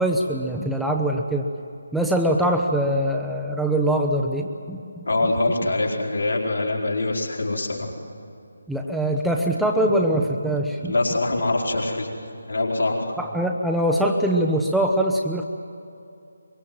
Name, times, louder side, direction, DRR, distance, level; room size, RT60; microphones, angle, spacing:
voice 1, 0.0-1.5 1.9-4.8 8.7-10.9 13.2-15.4, right 1 dB, ahead, 0 dB, 0.8 m, -23 dB
voice 2, 5.1-7.9 10.8-12.1 12.5-13.2, left 2 dB, 65° left, -1 dB, 4.3 m, -24 dB
23.5 x 22.5 x 7.7 m, 2.5 s
figure-of-eight pair, 150°, 0 cm